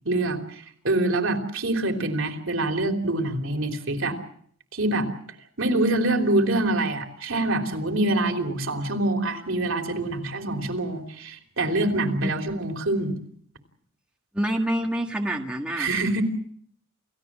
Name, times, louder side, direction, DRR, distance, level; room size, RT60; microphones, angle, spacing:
voice 1, 0.1-4.2 4.7-5.1 5.6-13.2 15.8-16.2, right 2 dB, 65° right, 5 dB, 3.4 m, -25 dB
voice 2, 14.3-15.9, right 1 dB, 5° right, 2 dB, 1.8 m, -27 dB
29.0 x 16.5 x 7.5 m, 0.63 s
head